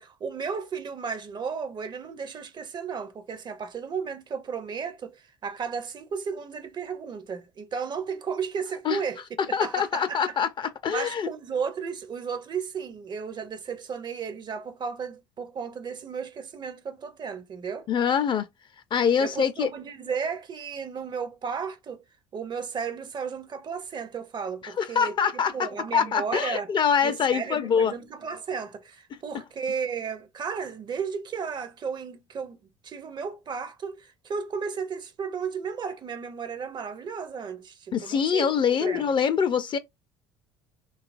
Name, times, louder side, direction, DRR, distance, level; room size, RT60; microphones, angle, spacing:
voice 1, 0.0-9.2 9.5-10.4 10.9-17.9 19.2-22.0 22.3-26.7 27.0-32.6 32.8-38.5 38.8-39.1, right 6 dB, 35° right, 0.5 m, -34 dB
voice 2, 9.5-11.3 17.9-18.5 18.9-19.7 24.8-25.5 25.9-27.9 29.3-29.4 37.9-39.8, left 7 dB, 40° left, 0.5 m, -24 dB
2.8 x 2.4 x 2.4 m
hypercardioid pair, 65°, 13 cm